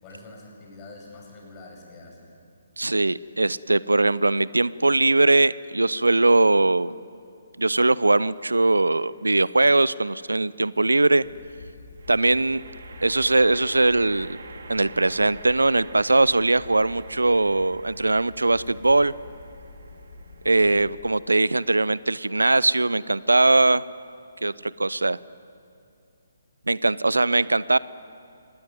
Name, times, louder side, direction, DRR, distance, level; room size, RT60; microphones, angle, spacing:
voice 1, 0.0-2.3, left 2 dB, 25° left, 0 dB, 7.1 m, -45 dB
voice 2, 2.8-6.9 7.6-11.2 12.1-12.6 13.0-14.4 14.7-19.1 20.4-23.8 24.4-25.2 26.7-27.8, right 2 dB, 80° right, 19 dB, 0.6 m, -20 dB
sound 1, 8.9-9.4 12.0-23.3, right 4 dB, 60° right, 2.7 m, -47 dB
sound 2, 11.2-21.0, left 2 dB, 65° left, 4.9 m, -46 dB
24.5 x 19.0 x 9.3 m, 2.4 s
figure-of-eight pair, 140°, 0 cm